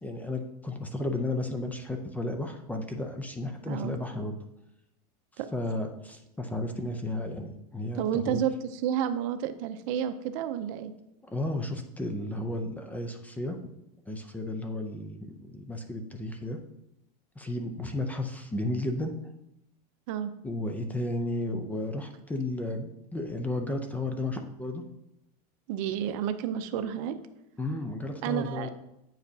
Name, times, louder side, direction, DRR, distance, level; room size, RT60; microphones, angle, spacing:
voice 1, 0.0-4.4 5.5-8.4 11.2-13.6 14.1-16.6 17.4-19.1 20.4-24.8 27.6-28.7, left 1 dB, 10° left, 5 dB, 0.4 m, -33 dB
voice 2, 3.7-4.0 5.4-5.5 7.9-10.9 20.1-20.3 25.7-27.2 28.2-28.7, right 9 dB, 60° right, 10 dB, 0.6 m, -30 dB
8.9 x 4.9 x 2.7 m, 0.84 s
supercardioid pair, 145°, 20 cm